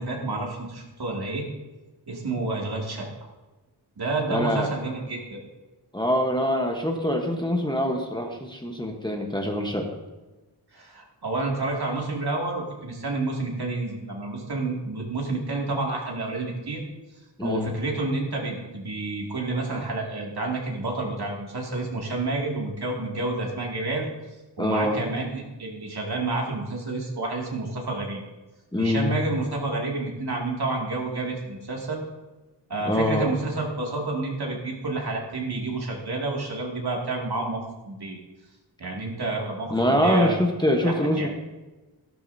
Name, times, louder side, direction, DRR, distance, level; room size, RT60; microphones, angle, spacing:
voice 1, 0.0-1.5 2.1-3.1 4.0-5.4 10.7-16.8 17.4-24.1 24.6-28.2 28.8-32.0 32.7-38.2 38.8-40.4 40.8-41.3, right 2 dB, 65° right, -1 dB, 2.5 m, -29 dB
voice 2, 4.3-4.7 5.9-10.0 17.4-17.7 24.6-25.0 28.7-29.2 32.8-33.3 39.7-41.3, left 1 dB, 10° left, 2 dB, 1.1 m, -24 dB
13.5 x 12.5 x 2.7 m, 1.1 s
wide cardioid pair, 130°, 41 cm